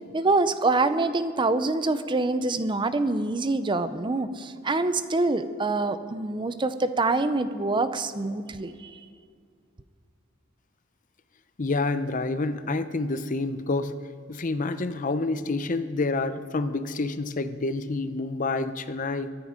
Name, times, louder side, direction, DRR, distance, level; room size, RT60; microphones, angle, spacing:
voice 1, 0.1-9.0, right 3 dB, 25° right, 12 dB, 0.5 m, -25 dB
voice 2, 11.6-13.9 14.3-19.3, left 3 dB, 40° left, 11 dB, 0.6 m, -28 dB
23.0 x 10.0 x 5.1 m, 2.2 s
head